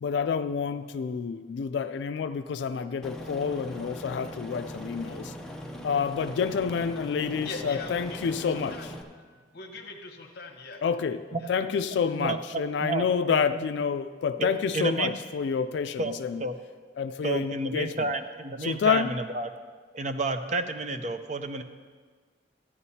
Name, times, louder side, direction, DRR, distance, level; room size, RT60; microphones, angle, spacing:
voice 1, 0.0-5.3 5.8-8.9 10.8-16.4 17.0-18.1 18.6-19.2, left 6 dB, 75° left, 0.3 m, -28 dB
Aircraft, 3.0-9.0, equal, 5° left, 0.7 m, -40 dB
voice 2, 7.4-8.8 9.1-10.8 11.4-11.5, left 3 dB, 60° left, 1.0 m, -41 dB
voice 3, 12.8-13.6 14.4-15.1 16.0-16.6 17.2-19.5 19.9-21.6, right 3 dB, 40° right, 0.5 m, -31 dB
14.0 x 9.6 x 2.8 m
head